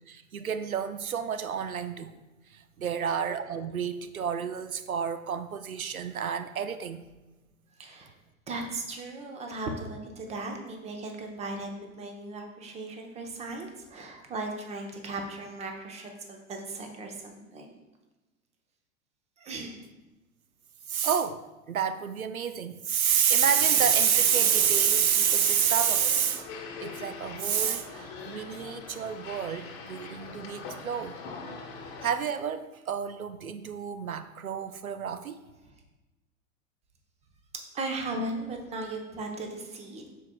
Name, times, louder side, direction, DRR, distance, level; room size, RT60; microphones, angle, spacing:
voice 1, 0.1-2.2 2.5-7.0 20.9-26.5 26.8-31.2 32.0-35.4, right 8 dB, 85° right, 11 dB, 0.5 m, -28 dB
voice 2, 7.8-8.1 8.5-17.7 19.4-19.8 37.7-40.1, right 2 dB, 15° right, 3 dB, 0.8 m, -37 dB
sound 1, 23.4-32.1, left 4 dB, 35° left, 1.2 m, -42 dB
12.5 x 4.6 x 2.2 m, 1.1 s
figure-of-eight pair, 100°, 41 cm